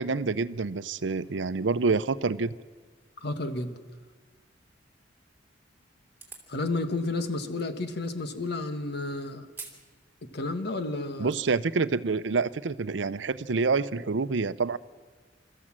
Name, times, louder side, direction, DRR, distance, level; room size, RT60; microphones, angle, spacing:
voice 1, 0.0-2.5 11.2-14.8, right 4 dB, 85° right, 15 dB, 0.6 m, -27 dB
voice 2, 3.2-3.7 6.5-9.5 10.3-11.3, left 2 dB, 60° left, 8 dB, 1.5 m, -31 dB
sound 1, 6.1-6.5 7.6-7.7 9.5-9.8 10.2-10.3 11.0-11.4, right 4 dB, 10° right, 2.9 m, -44 dB
27.0 x 13.5 x 7.5 m, 1.4 s
head